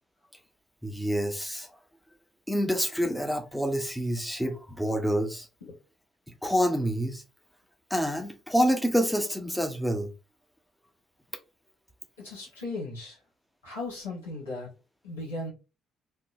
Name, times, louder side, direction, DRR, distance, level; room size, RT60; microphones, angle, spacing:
voice 1, 0.8-1.7 2.5-5.5 6.4-7.2 7.9-10.1, equal, 5° left, 0.7 m, -27 dB
voice 2, 12.2-13.2 13.6-14.7 15.0-15.5, left 2 dB, 80° left, 1.5 m, -37 dB
3.6 x 2.2 x 2.7 m
figure-of-eight pair, 45°, 0 cm